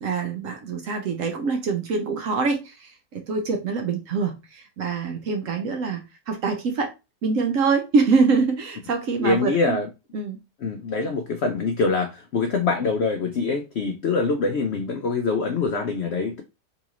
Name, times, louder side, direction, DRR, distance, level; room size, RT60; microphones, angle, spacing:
voice 1, 0.0-6.9 7.2-9.8 10.1-10.4, right 4 dB, 65° right, 0.9 m, -25 dB
voice 2, 9.2-9.9 10.6-16.4, left 4 dB, 75° left, 0.6 m, -24 dB
3.9 x 2.5 x 2.9 m
omnidirectional pair, 1.8 m